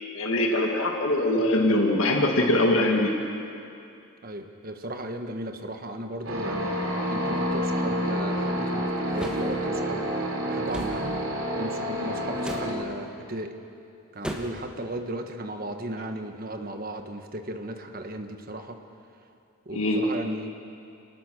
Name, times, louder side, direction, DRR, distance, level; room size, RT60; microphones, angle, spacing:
voice 1, 0.1-3.2 19.7-20.1, left 1 dB, 70° left, 1 dB, 1.9 m, -22 dB
voice 2, 1.4-1.8 4.2-6.7 7.1-10.1 10.5-11.2 11.6-13.6 14.1-18.8 19.6-20.6, right 1 dB, 40° right, 5 dB, 1.4 m, -36 dB
sound 1, 6.2-12.7, equal, 70° right, 3.5 m, -28 dB
sound 2, 9.2-9.5 10.7-11.0 12.4-12.7 14.2-14.7, equal, 5° right, 1.5 m, -35 dB
28.5 x 19.0 x 6.3 m, 2.6 s
head